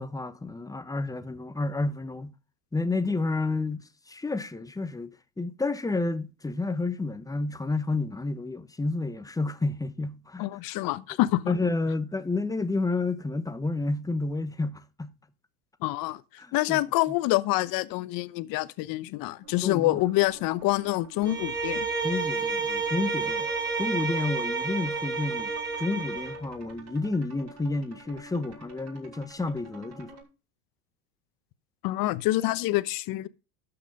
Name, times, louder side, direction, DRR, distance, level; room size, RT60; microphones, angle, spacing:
voice 1, 0.0-2.3 2.7-5.1 5.4-10.5 11.5-15.1 16.4-16.8 19.6-20.0 22.0-23.5 23.8-25.5 25.8-30.1, left 3 dB, 10° left, 0.9 m, -30 dB
voice 2, 10.4-11.5 15.8-16.2 16.5-21.9 31.8-33.3, left 18 dB, 50° left, 0.9 m, -26 dB
sound 1, 19.4-30.2, right 3 dB, 35° right, 6.2 m, -50 dB
Bowed string instrument, 21.2-26.4, right 4 dB, 10° right, 4.3 m, -30 dB
13.0 x 5.9 x 5.3 m
hypercardioid pair, 95°, 45 cm